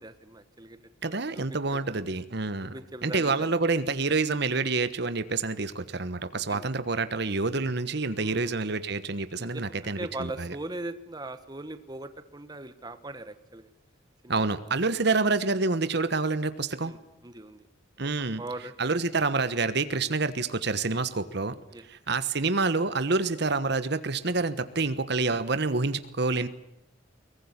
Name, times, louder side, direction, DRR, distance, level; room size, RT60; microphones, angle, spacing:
voice 1, 0.0-1.4 1.7-1.8 2.6-3.5 6.3-6.7 8.1-8.6 9.4-13.7 14.2-14.5 16.8-17.7 18.4-18.7 21.7-21.8, right 2 dB, 20° right, 11 dB, 1.3 m, -40 dB
voice 2, 1.0-10.6 14.3-16.9 18.0-18.4 18.8-21.6 21.8-26.5, right 3 dB, 60° right, 13 dB, 1.3 m, -28 dB
22.5 x 20.0 x 9.7 m, 0.83 s
head